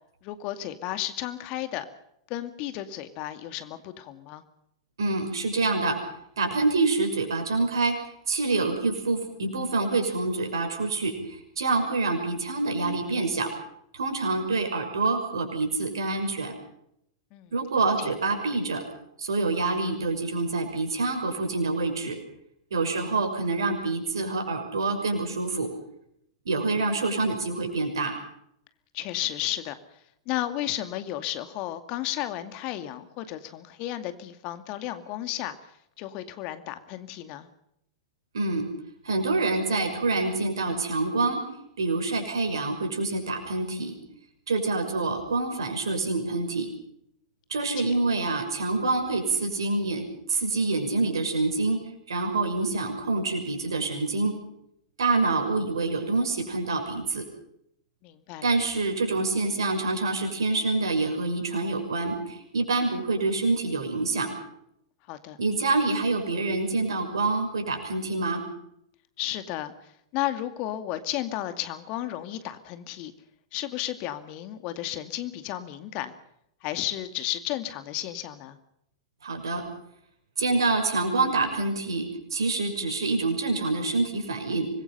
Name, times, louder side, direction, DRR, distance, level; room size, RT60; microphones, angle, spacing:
voice 1, 0.2-1.9 2.3-4.4 17.3-17.5 18.0-18.1 23.0-23.1 28.9-29.7 30.3-35.5 36.0-37.5 47.8-47.9 58.0-58.6 65.1-65.4 69.2-73.1 73.5-76.1 76.6-78.6, left 13 dB, 45° left, 9 dB, 2.3 m, -33 dB
voice 2, 5.0-6.0 6.4-8.0 8.3-13.5 13.9-16.5 17.5-18.8 19.2-22.2 22.7-25.7 26.4-28.2 38.3-38.6 39.0-41.4 41.8-44.0 44.5-46.7 47.5-51.8 52.1-54.3 55.0-57.2 58.4-64.4 65.4-68.4 79.2-79.6 80.4-84.7, right 3 dB, 70° right, 5 dB, 6.1 m, -26 dB
25.5 x 21.5 x 5.6 m, 0.74 s
figure-of-eight pair, 100°, 2 cm